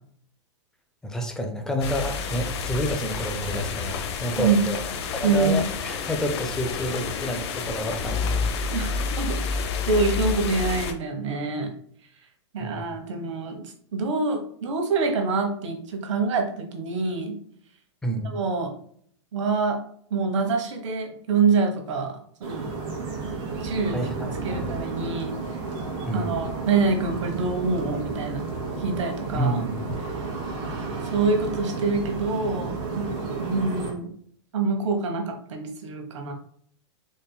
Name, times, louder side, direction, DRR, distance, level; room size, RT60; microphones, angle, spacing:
voice 1, 1.0-4.8 5.1-8.5 12.6-12.9 18.0-18.4 23.9-24.7 26.1-26.4 29.3-29.8, equal, 5° left, 4 dB, 0.5 m, -29 dB
sound 1, 1.8-10.9, left 5 dB, 60° left, 0.7 m, -29 dB
voice 2, 4.4-4.7 5.2-5.6 8.7-9.4 9.9-11.7 12.5-17.3 18.2-18.7 19.3-19.8 20.1-22.1 22.4-22.6 23.6-24.0 24.4-25.3 26.1-28.5 28.8-29.6 30.0-30.3 31.1-33.1 33.4-34.1 34.5-36.3, right 4 dB, 75° right, 3 dB, 1.2 m, -26 dB
sound 2, 22.4-33.9, right 4 dB, 50° right, 1.5 m, -32 dB
4.2 x 3.4 x 2.2 m, 0.62 s
hypercardioid pair, 145°, 16 cm